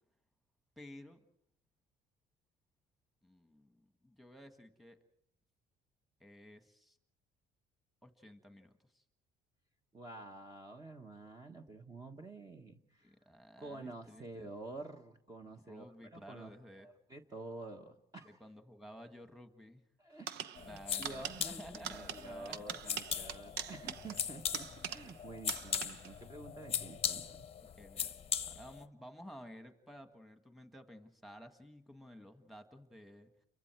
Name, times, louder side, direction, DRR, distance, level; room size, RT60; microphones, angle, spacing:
voice 1, 0.8-1.2 3.2-5.0 6.2-7.0 8.0-9.0 13.0-14.5 15.4-16.9 18.2-19.8 20.7-22.9 27.8-33.3, equal, ahead, 7 dB, 1.8 m, -54 dB
voice 2, 9.9-13.1 13.6-16.5 16.8-18.4 20.0-27.4, right 2 dB, 20° right, 4 dB, 1.3 m, -49 dB
sound 1, 20.3-25.2 25.5-26.2, right 9 dB, 80° right, 0.9 m, -43 dB
sound 2, 20.6-28.8, left 8 dB, 35° left, 0.8 m, -40 dB
30.0 x 23.5 x 4.6 m, 0.72 s
cardioid pair, 110°, 17 cm